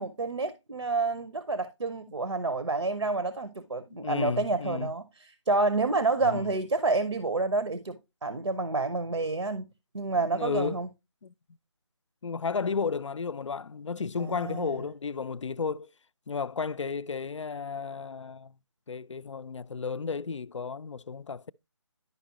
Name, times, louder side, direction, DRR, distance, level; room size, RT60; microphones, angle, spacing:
voice 1, 0.0-9.6 9.9-10.9 14.2-14.7, right 3 dB, 85° right, 0.9 m, -29 dB
voice 2, 3.9-4.9 6.2-6.5 10.1-10.8 11.2-11.3 12.2-15.9 16.3-18.5 18.9-21.5, left 5 dB, 80° left, 0.4 m, -33 dB
11.0 x 5.2 x 2.8 m
figure-of-eight pair, 155°, 15 cm